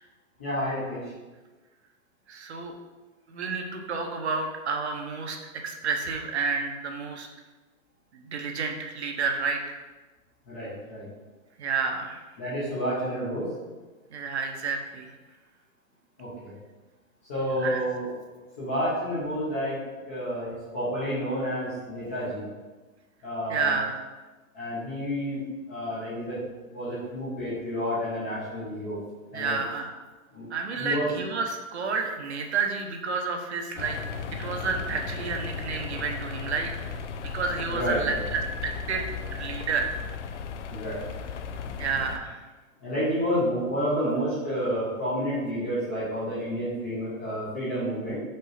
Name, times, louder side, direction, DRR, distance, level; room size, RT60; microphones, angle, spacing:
voice 1, 0.4-1.1 10.5-11.1 12.4-13.5 16.2-16.5 17.3-18.1 18.6-19.8 20.1-22.4 23.2-23.8 24.5-25.4 25.7-26.4 26.7-29.0 29.3-29.6 30.3-30.5 30.8-31.1 37.7-38.2 40.7-41.0 41.8-41.9 42.8-48.2, equal, 10° left, -10 dB, 0.6 m, -30 dB
voice 2, 2.3-2.7 3.3-5.4 5.6-7.3 8.1-9.8 11.6-12.2 14.1-15.1 17.6-17.8 23.5-24.0 29.3-29.9 30.5-34.0 34.4-36.7 37.2-39.9 41.8-42.4, right 4 dB, 50° right, 3 dB, 1.0 m, -30 dB
sound 1, 33.8-42.2, left 5 dB, 60° left, 0.6 m, -36 dB
5.4 x 4.4 x 5.8 m, 1.2 s
hypercardioid pair, 175°, 41 cm